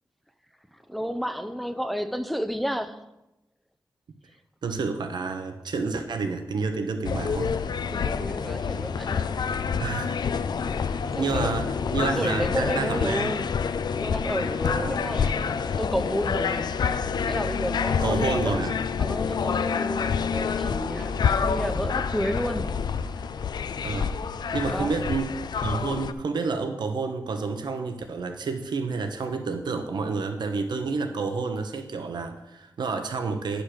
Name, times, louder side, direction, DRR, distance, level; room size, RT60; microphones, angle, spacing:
voice 1, 0.9-3.0 7.9-9.3 10.9-13.5 14.0-16.7 17.3-18.7 19.0-22.7 24.7-25.1, equal, ahead, 0.5 m, -31 dB
voice 2, 4.6-7.6 9.8-10.1 10.8-13.3 14.8-15.1 18.0-18.8 23.8-24.1 24.5-25.3 25.6-33.6, right 4 dB, 90° right, 0.8 m, -29 dB
sound 1, 7.0-26.1, left 6 dB, 75° left, 0.4 m, -27 dB
10.0 x 5.3 x 6.3 m
wide cardioid pair, 135°, 7 cm